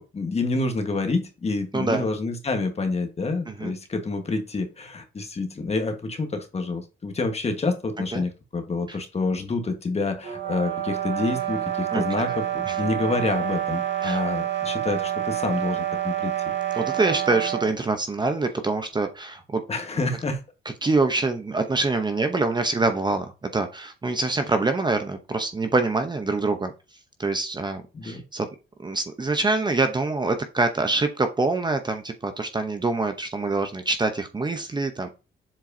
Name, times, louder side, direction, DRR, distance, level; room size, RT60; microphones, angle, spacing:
voice 1, 0.0-16.3 19.7-20.4 27.9-28.2, left 3 dB, 30° left, 6 dB, 1.5 m, -28 dB
voice 2, 1.7-2.1 3.5-3.7 8.1-8.2 8.9-9.0 11.9-12.4 12.7-12.8 14.0-14.2 16.7-19.6 20.8-23.3 23.5-26.7 27.2-28.5 28.8-35.1, right 3 dB, 20° right, 7 dB, 0.8 m, -25 dB
sound 1, 10.2-17.7, right 11 dB, 65° right, 1.8 m, -28 dB
7.4 x 4.6 x 2.8 m, 0.30 s
cardioid pair, 90°, 20 cm